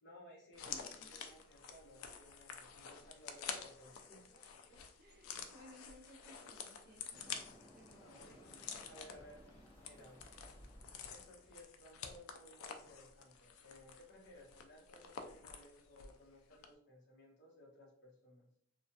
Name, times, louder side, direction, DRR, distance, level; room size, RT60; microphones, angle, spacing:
voice 1, 0.0-4.8 5.3-5.4 7.9-9.4 9.8-10.2 11.1-18.5, left 1 dB, 55° left, -4 dB, 0.9 m, -60 dB
sound 1, 0.5-16.2 16.5-16.7, left 6 dB, 80° left, 0.3 m, -50 dB
voice 2, 0.7-1.1 3.8-4.0 5.0-8.5, equal, 45° right, 3 dB, 0.5 m, -61 dB
sound 2, 7.1-12.0, equal, 25° left, 0.8 m, -60 dB
2.3 x 2.2 x 2.6 m, 0.66 s
head